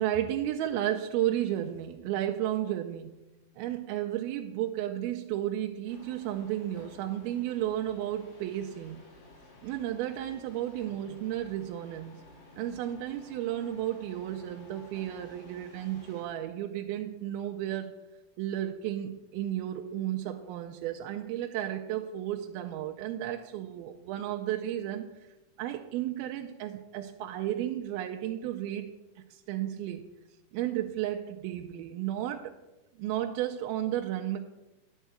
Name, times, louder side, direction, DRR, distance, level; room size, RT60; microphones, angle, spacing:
voice 1, 0.0-3.2 3.6-9.0 9.6-12.2 12.6-18.0 18.4-25.0 25.6-30.1 30.5-32.6 33.0-34.4, right 12 dB, 85° right, 4 dB, 2.3 m, -33 dB
sound 1, 5.9-16.2, left 2 dB, 70° left, 4.0 m, -54 dB
10.5 x 4.5 x 7.7 m, 1.0 s
omnidirectional pair, 4.5 m